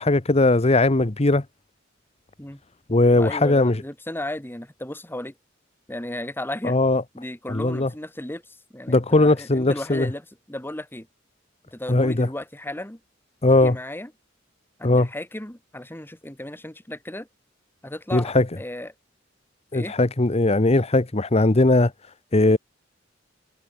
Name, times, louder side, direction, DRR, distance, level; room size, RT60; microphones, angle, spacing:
voice 1, 0.0-1.4 2.9-3.8 6.6-7.0 7.5-7.9 8.9-10.1 11.9-12.3 13.4-13.8 14.8-15.1 18.1-18.5 19.7-21.9 22.3-22.6, left 2 dB, 35° left, 1.0 m, -19 dB
voice 2, 3.1-5.3 5.9-6.8 7.1-11.1 11.7-13.0 13.5-14.1 14.8-17.3 17.8-18.9 19.7-20.0, left 1 dB, 10° left, 1.9 m, -35 dB
head